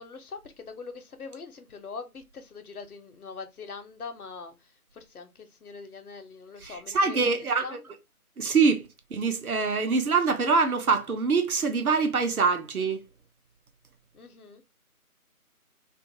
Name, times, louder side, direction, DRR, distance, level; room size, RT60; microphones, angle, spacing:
voice 1, 0.0-7.8 14.1-14.6, left 4 dB, 75° left, 0.8 m, -43 dB
voice 2, 6.6-7.8 8.4-13.0, right 4 dB, 70° right, 0.8 m, -24 dB
2.5 x 2.4 x 2.7 m
figure-of-eight pair, 170°, 45 cm